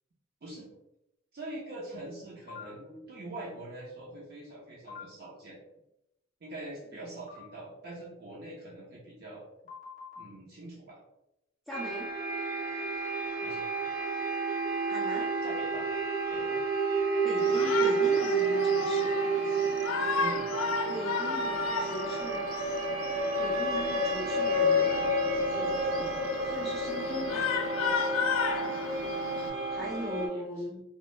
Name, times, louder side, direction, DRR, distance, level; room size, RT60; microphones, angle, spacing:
voice 1, 1.3-5.6 6.4-9.5 10.2-11.0 13.4-13.7 15.2-15.9 16.3-16.6 20.2-20.5 29.4-29.9 30.3-30.4, right 1 dB, 50° right, -5 dB, 0.5 m, -44 dB
sound 1, 2.5-2.7 4.9-5.0 7.3-7.4 9.7-10.2, left 5 dB, 40° left, 0.6 m, -44 dB
voice 2, 11.7-12.1 14.9-15.3 17.2-19.1 20.9-22.8 23.4-25.2 25.5-27.5 29.7-30.8, left 1 dB, ahead, -6 dB, 0.3 m, -40 dB
sound 2, 11.7-30.3, right 2 dB, 70° right, 0.9 m, -30 dB
Shout, 17.4-29.5, left 5 dB, 80° left, 0.3 m, -34 dB
2.1 x 2.0 x 3.0 m, 0.88 s
head